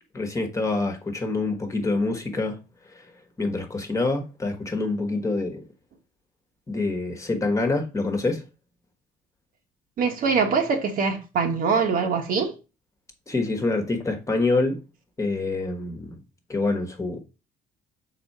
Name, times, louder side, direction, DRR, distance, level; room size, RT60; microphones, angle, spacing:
voice 1, 0.1-2.6 3.4-5.6 6.7-8.4 13.3-14.8 15.2-16.2 16.5-17.2, left 3 dB, 20° left, 1.4 m, -26 dB
voice 2, 10.0-12.5, right 5 dB, 55° right, 1.4 m, -23 dB
6.1 x 4.3 x 4.2 m
cardioid pair, 110°, 17 cm